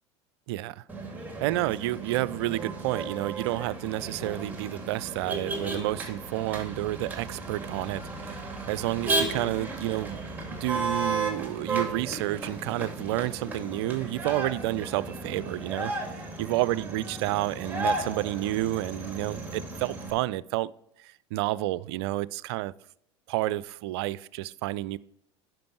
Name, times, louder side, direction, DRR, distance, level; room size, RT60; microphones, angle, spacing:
voice 1, 0.5-0.8 1.4-8.4 8.7-10.2 10.5-15.9 16.4-20.7 21.0-22.7 23.3-25.0, right 17 dB, 65° right, 20 dB, 0.4 m, -30 dB
Motor vehicle (road), 0.9-20.1, right 2 dB, 10° right, 2.3 m, -34 dB
10.5 x 5.9 x 4.4 m, 0.75 s
hypercardioid pair, 75°, 15 cm